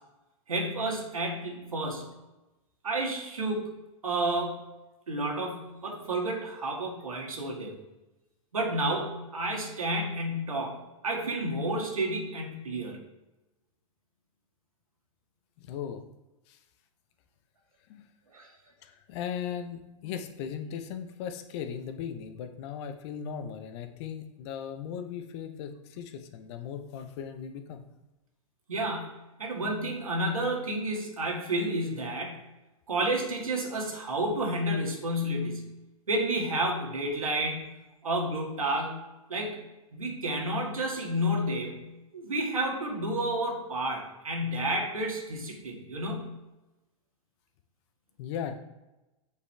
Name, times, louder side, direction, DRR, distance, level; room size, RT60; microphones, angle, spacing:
voice 1, 0.5-2.1 2.8-3.7 4.0-4.6 5.1-7.8 8.5-13.0 18.3-18.5 28.7-32.4 32.9-35.7 36.1-37.7 38.0-39.0 39.3-39.6 39.9-46.3, right 1 dB, 90° right, 1 dB, 1.9 m, -31 dB
voice 2, 15.6-16.0 16.5-16.6 17.9-18.1 18.8-27.8 48.2-48.6, left 8 dB, 55° left, 8 dB, 0.9 m, -38 dB
8.1 x 5.5 x 3.4 m, 1.0 s
hypercardioid pair, 105°, 17 cm